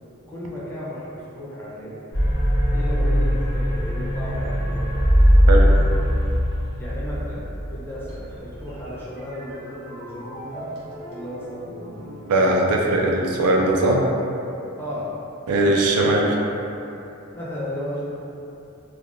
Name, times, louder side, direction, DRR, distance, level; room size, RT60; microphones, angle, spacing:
voice 1, 0.3-2.0 2.7-5.2 6.8-10.7 11.1-12.1 14.8-15.1 15.5-16.6 17.3-18.0, equal, 10° left, -8 dB, 0.5 m, -34 dB
sound 1, 2.1-8.8, equal, 40° left, 0.8 m, -20 dB
sound 2, 8.1-14.8, right 1 dB, 50° right, 0.7 m, -41 dB
voice 2, 12.3-14.0 15.5-16.3, right 2 dB, 90° right, -1 dB, 0.4 m, -19 dB
3.2 x 2.2 x 2.5 m, 2.9 s
head